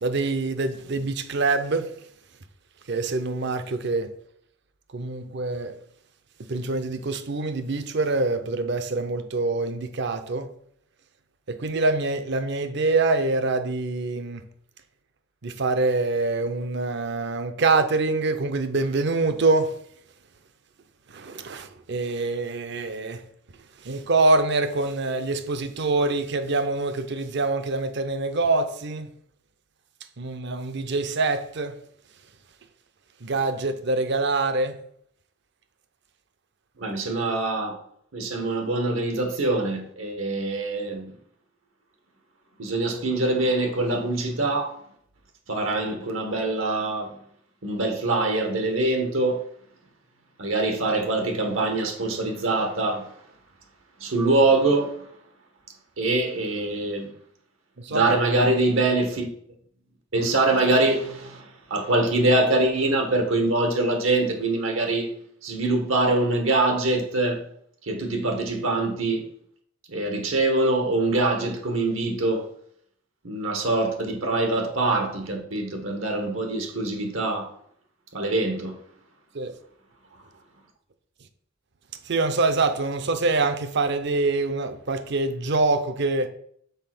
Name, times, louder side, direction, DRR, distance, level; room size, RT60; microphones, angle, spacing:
voice 1, 0.0-1.9 2.9-4.1 4.9-5.8 6.5-10.5 11.5-14.4 15.4-19.7 21.1-23.2 23.8-29.1 30.2-31.7 33.2-34.8 57.8-58.1 79.3-79.6 82.1-86.3, right 3 dB, 60° right, 0.6 m, -25 dB
voice 2, 36.8-37.8 38.1-41.1 42.6-44.8 45.5-47.2 47.6-49.4 50.4-53.1 54.0-55.1 56.0-57.1 57.9-59.3 60.1-65.1 65.4-67.4 67.8-69.2 69.9-72.5 73.2-77.5 78.1-78.7, right 2 dB, 85° right, 1.4 m, -24 dB
5.6 x 4.1 x 5.9 m
head